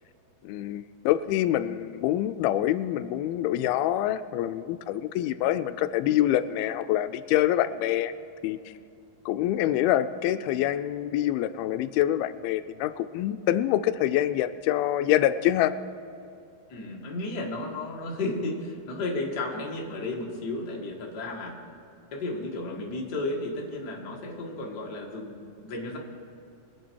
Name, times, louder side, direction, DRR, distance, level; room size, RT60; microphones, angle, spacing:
voice 1, 0.4-8.1 8.4-8.7 9.3-15.7, left 12 dB, 85° left, 12 dB, 2.4 m, -26 dB
voice 2, 16.7-21.6 22.1-26.0, left 2 dB, 40° left, -2 dB, 1.6 m, -33 dB
23.0 x 8.8 x 4.6 m, 2.6 s
omnidirectional pair, 4.3 m